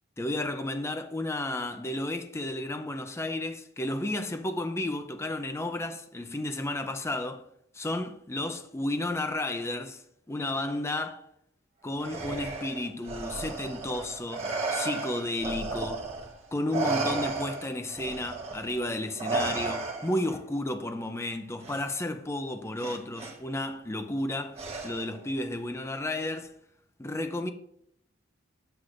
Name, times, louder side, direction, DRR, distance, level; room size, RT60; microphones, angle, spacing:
voice 1, 0.2-7.4 7.7-11.2 11.8-16.1 16.5-26.5 27.0-27.5, left 1 dB, 15° left, 0.5 m, -32 dB
Respiratory sounds, 12.0-16.4 16.7-20.3 21.6-21.8 22.8-23.3 24.6-25.2, right 3 dB, 30° right, 1.3 m, -33 dB
9.9 x 7.8 x 2.5 m
head